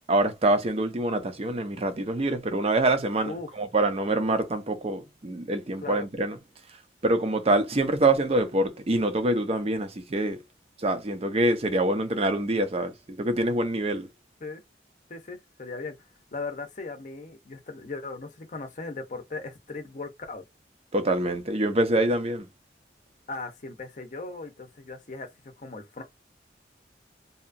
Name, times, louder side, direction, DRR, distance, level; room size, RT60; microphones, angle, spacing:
voice 1, 0.1-6.4 7.0-10.4 10.8-14.1 20.9-22.4, right 2 dB, 35° right, 0.5 m, -25 dB
voice 2, 15.1-16.0 16.3-20.4 23.3-25.3 25.6-26.0, left 3 dB, 45° left, 0.6 m, -38 dB
2.7 x 2.3 x 2.5 m
head